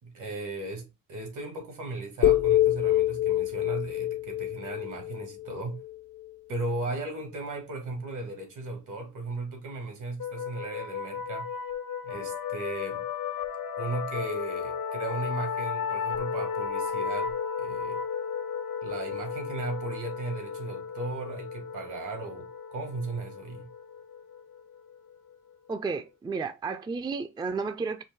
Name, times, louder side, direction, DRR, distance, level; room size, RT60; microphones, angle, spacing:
voice 1, 0.0-5.8 6.5-11.5 12.0-13.1 13.8-18.0 18.8-23.7, right 2 dB, 75° right, 1.7 m, -36 dB
sound 1, 2.2-6.3, left 14 dB, 60° left, 0.5 m, -26 dB
sound 2, 10.2-25.5, left 6 dB, 90° left, 0.8 m, -34 dB
voice 2, 25.7-28.0, right 4 dB, 15° right, 0.3 m, -32 dB
4.6 x 2.7 x 3.5 m
wide cardioid pair, 135°, 31 cm